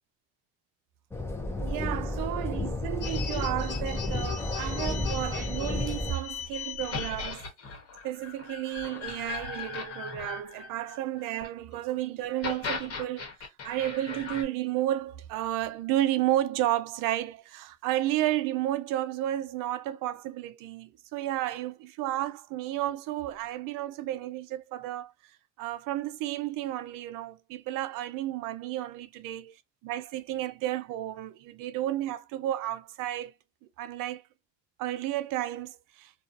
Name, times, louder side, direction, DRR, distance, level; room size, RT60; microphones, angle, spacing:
sound 1, 1.1-6.1, left 2 dB, 10° left, 0.4 m, -32 dB
voice 1, 1.6-7.5 8.0-25.1 25.6-29.5 29.8-33.3 33.8-34.2 34.8-36.1, right 14 dB, 70° right, 0.5 m, -32 dB
sound 2, 3.0-11.5 12.2-14.4, left 6 dB, 45° left, 1.1 m, -38 dB
2.7 x 2.3 x 2.4 m
cardioid pair, 140°, 33 cm